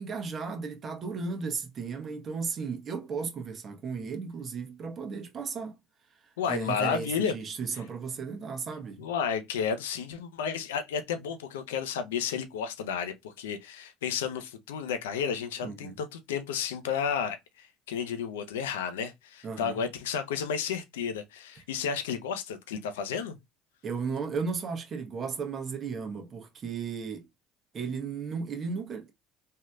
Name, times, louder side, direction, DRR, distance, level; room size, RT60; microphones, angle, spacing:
voice 1, 0.0-5.8 6.5-9.1 15.6-16.0 19.4-19.8 23.8-27.3 27.7-29.1, right 5 dB, 40° right, 1.1 m, -35 dB
voice 2, 6.4-7.3 9.0-23.4, left 7 dB, 90° left, 0.6 m, -32 dB
3.2 x 2.8 x 2.3 m
hypercardioid pair, 80°, 0 cm